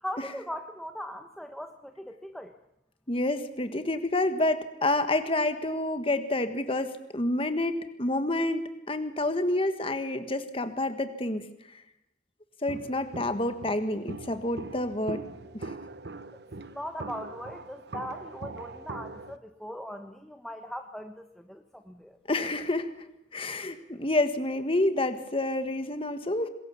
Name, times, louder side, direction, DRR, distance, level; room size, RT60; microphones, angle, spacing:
voice 1, 0.0-2.5 16.6-22.2, equal, ahead, 6 dB, 1.2 m, -40 dB
voice 2, 3.1-11.4 12.6-15.2 15.5-15.7 22.3-22.9 23.3-26.5, left 2 dB, 30° left, 8 dB, 1.6 m, -28 dB
Walk footsteps, 12.7-19.4, right 3 dB, 65° right, 1.0 m, -41 dB
26.5 x 21.5 x 7.1 m, 0.84 s
head